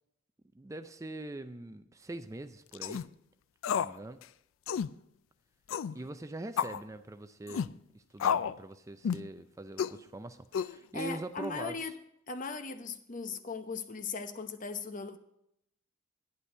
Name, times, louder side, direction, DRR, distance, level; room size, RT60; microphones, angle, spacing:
voice 1, 0.5-3.0 3.7-4.2 5.9-11.9, right 2 dB, 15° right, 10 dB, 0.4 m, -43 dB
sound 1, 2.7-3.1 3.6-4.0 4.2-4.3 4.7-4.9 5.7-5.9 6.6-6.8 7.5-7.7 8.2-8.6 9.0-9.3 9.8-10.0 10.5-11.0, left 7 dB, 85° left, 0.3 m, -31 dB
voice 2, 10.9-11.9 12.3-15.2, left 4 dB, 40° left, 8 dB, 0.8 m, -38 dB
11.0 x 9.9 x 4.5 m, 0.79 s
head